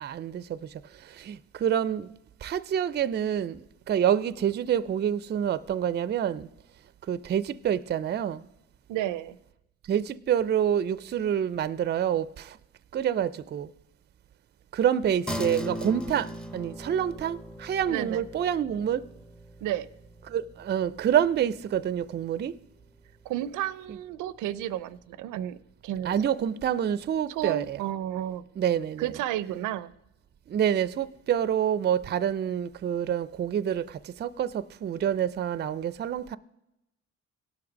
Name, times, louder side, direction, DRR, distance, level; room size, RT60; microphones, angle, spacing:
voice 1, 0.0-0.6 1.1-2.1 2.4-6.5 7.1-8.4 9.9-12.6 12.9-13.7 14.7-19.0 20.3-22.5 26.0-27.8 28.6-29.1 30.5-36.4, right 9 dB, 35° right, 0.4 m, -27 dB
voice 2, 8.9-9.4 17.9-18.2 19.6-19.9 23.2-26.2 27.3-28.4 29.0-29.9, right 12 dB, 90° right, 0.5 m, -32 dB
sound 1, 15.3-25.0, equal, 5° left, 0.7 m, -40 dB
17.0 x 6.0 x 5.1 m
cardioid pair, 90°, 30 cm